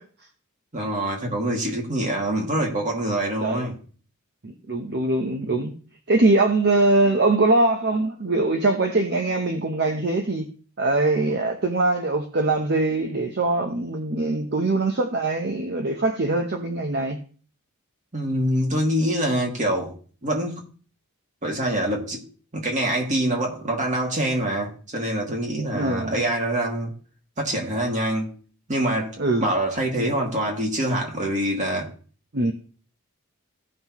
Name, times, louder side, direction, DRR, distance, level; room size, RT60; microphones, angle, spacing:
voice 1, 0.7-3.7 18.1-19.9 20.2-20.6 21.4-22.2 22.5-26.9 27.4-28.3 28.7-29.1 29.4-31.9, right 1 dB, 35° right, 2.2 m, -25 dB
voice 2, 4.4-5.7 6.1-10.4 10.8-17.2 25.7-26.2 29.2-29.5 32.3-32.5, right 2 dB, 50° right, 0.8 m, -22 dB
16.0 x 5.7 x 3.0 m
head